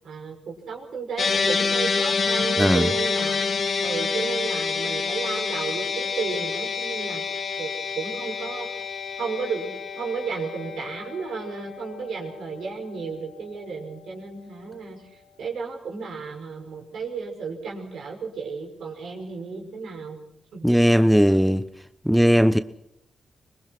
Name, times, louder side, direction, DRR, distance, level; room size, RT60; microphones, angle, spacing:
voice 1, 0.0-3.4 3.8-7.2 7.6-8.7 9.2-20.2 20.5-20.7, right 5 dB, 75° right, 5.5 m, -33 dB
sound 1, 1.2-13.6, left 5 dB, 60° left, 2.4 m, -28 dB
voice 2, 2.6-2.9 20.6-21.7 22.0-22.6, equal, 5° right, 1.0 m, -18 dB
25.5 x 20.0 x 6.1 m
supercardioid pair, 50°, 0 cm